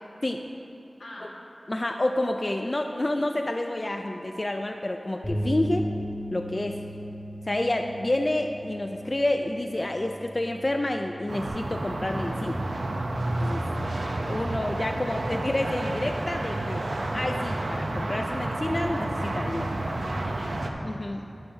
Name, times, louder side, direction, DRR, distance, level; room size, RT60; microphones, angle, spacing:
voice 1, 1.0-1.3 6.9-7.0 19.7-21.3, left 1 dB, 90° left, -4 dB, 1.5 m, -48 dB
voice 2, 1.7-5.8 6.3-6.8 7.5-12.6 13.4-13.6 14.2-16.8 17.1-19.7 20.8-21.3, left 1 dB, 40° left, 4 dB, 0.3 m, -29 dB
Bass guitar, 5.2-11.5, equal, 15° left, 2.2 m, -36 dB
sound 1, 11.3-20.7, right 1 dB, 85° right, 0.6 m, -30 dB
11.5 x 8.6 x 2.7 m, 2.8 s
wide cardioid pair, 70°, 0 cm